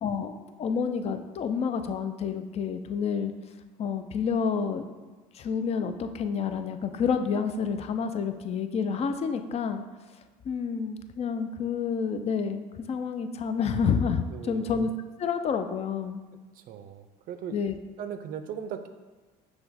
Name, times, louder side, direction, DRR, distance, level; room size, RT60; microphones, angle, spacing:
voice 1, 0.0-3.3 3.8-4.9 5.3-9.8 10.5-14.9 15.2-16.2 17.5-17.8, left 6 dB, 40° left, 8 dB, 0.4 m, -29 dB
voice 2, 14.3-14.8 16.5-17.6 18.0-18.9, right 8 dB, 55° right, 9 dB, 0.4 m, -38 dB
5.7 x 2.2 x 4.1 m, 1.3 s
supercardioid pair, 85°, 17 cm